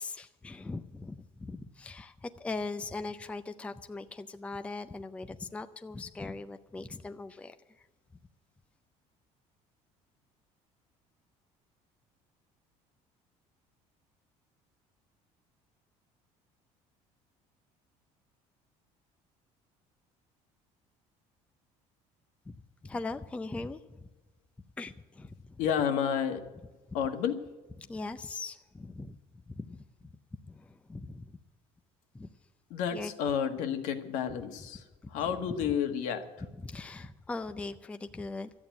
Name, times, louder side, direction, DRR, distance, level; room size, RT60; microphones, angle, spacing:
voice 1, 0.0-7.9 22.5-22.6 22.8-24.1 24.8-25.6 27.8-29.2 29.5-29.8 30.5-31.3 32.1-32.3 32.9-33.1 35.2-35.8 36.5-38.5, left 3 dB, 10° left, 8 dB, 0.5 m, -40 dB
voice 2, 25.6-26.4 26.9-27.4 32.7-34.8 35.1-36.3, left 8 dB, 70° left, 6 dB, 1.6 m, -30 dB
13.5 x 8.8 x 9.3 m, 1.2 s
cardioid pair, 150°, 13 cm